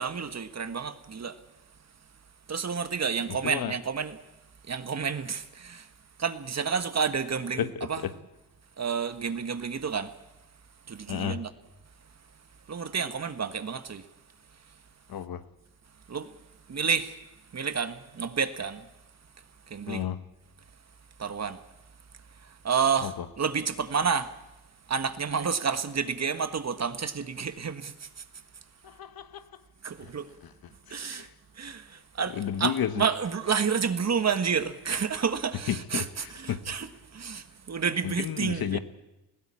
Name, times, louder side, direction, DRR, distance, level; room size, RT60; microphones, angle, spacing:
voice 1, 0.0-1.4 2.5-4.2 4.6-5.9 6.2-8.0 8.8-10.2 10.8-11.5 12.0-12.4 12.7-14.1 14.5-14.8 16.1-16.4 16.7-18.9 19.4-20.1 21.2-21.7 22.2-24.6 24.9-28.6 29.8-30.3 30.9-31.3 31.5-38.8, right 6 dB, 40° right, 1.5 m, -30 dB
voice 2, 7.6-8.1 11.1-11.4 15.1-15.4 19.9-20.2 23.0-23.1 28.8-29.5 30.0-30.1 30.9-31.3 32.3-33.0 35.7-36.6 38.0-38.8, left 9 dB, 60° left, 1.2 m, -32 dB
20.5 x 16.5 x 8.7 m
supercardioid pair, 60°, 39 cm